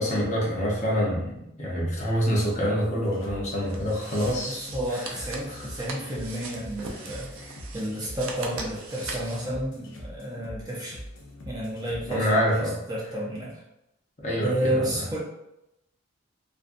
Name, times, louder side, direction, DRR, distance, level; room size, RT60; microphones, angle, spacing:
voice 1, 0.0-4.6 4.9-5.0 5.5-5.7 12.1-12.8 14.2-15.0, equal, 35° left, -5 dB, 0.7 m, -26 dB
sound 1, 3.0-12.3, equal, 75° left, 0.5 m, -43 dB
sound 2, 3.7-9.5, right 3 dB, 75° right, 0.4 m, -40 dB
voice 2, 4.5-7.3 7.7-11.0 11.4-13.6 14.4-15.2, right 1 dB, 20° right, -5 dB, 0.5 m, -31 dB
2.5 x 2.2 x 2.5 m, 0.86 s
head